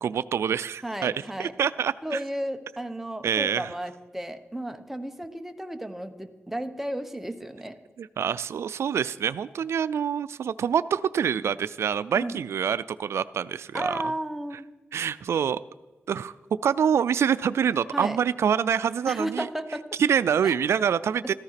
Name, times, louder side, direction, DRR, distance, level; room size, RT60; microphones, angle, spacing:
voice 1, 0.0-2.2 3.2-3.7 8.0-14.0 14.9-15.6 16.1-16.3 16.6-19.5 20.0-21.3, right 8 dB, 90° right, 15 dB, 0.4 m, -26 dB
voice 2, 0.8-1.5 2.0-7.8 12.1-12.4 13.7-14.7 17.9-18.2 19.1-19.9 20.4-20.6, right 1 dB, 5° right, 7 dB, 1.1 m, -33 dB
14.0 x 13.5 x 5.8 m, 1.1 s
wide cardioid pair, 90°, 4 cm